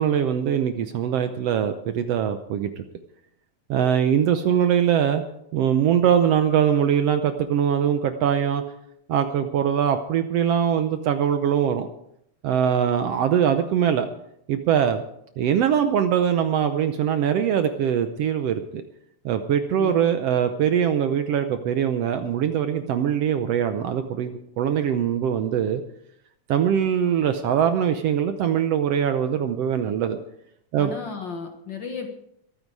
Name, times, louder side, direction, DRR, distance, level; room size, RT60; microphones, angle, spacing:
voice 1, 0.0-2.8 3.7-5.2 5.5-8.6 9.1-11.9 12.4-14.1 14.5-15.0 15.4-18.8 19.2-25.8 26.5-30.2 30.7-30.9, right 8 dB, 70° right, 8 dB, 1.6 m, -22 dB
voice 2, 30.8-32.1, left 5 dB, 50° left, 4 dB, 1.6 m, -34 dB
22.5 x 9.4 x 4.7 m, 0.74 s
omnidirectional pair, 3.4 m